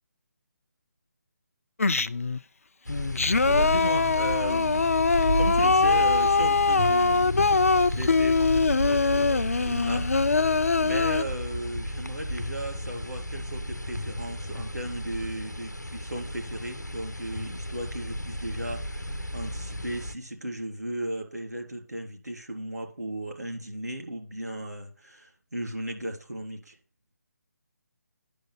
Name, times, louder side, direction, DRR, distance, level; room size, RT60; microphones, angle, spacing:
Singing, 1.8-2.4 2.9-11.2, left 4 dB, 55° left, 0.6 m, -23 dB
xlr cable interference, 2.8-20.1, equal, 85° left, 1.0 m, -33 dB
voice 1, 3.4-4.9 5.4-10.1 10.8-26.7, right 1 dB, 75° right, 3.5 m, -35 dB
10.0 x 6.4 x 5.6 m
figure-of-eight pair, 150°, 9 cm